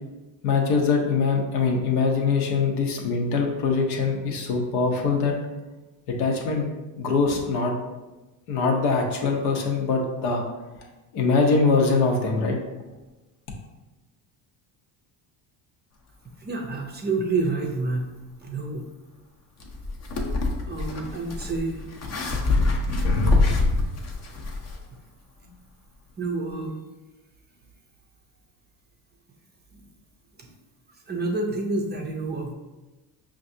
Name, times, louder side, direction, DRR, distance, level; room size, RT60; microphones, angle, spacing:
voice 1, 0.4-5.3 6.1-6.7 7.0-7.7 8.5-10.4 11.1-12.6, left 4 dB, 80° left, 1 dB, 0.9 m, -23 dB
voice 2, 16.4-18.1 18.4-18.9 20.7-21.8 26.2-26.7 29.7-29.8 30.4-30.5 31.1-32.5, right 3 dB, 20° right, 1 dB, 0.5 m, -28 dB
sound 1, 19.6-24.8, left 2 dB, 35° left, 0.6 m, -24 dB
5.2 x 2.5 x 2.6 m, 1.1 s
supercardioid pair, 95°, 48 cm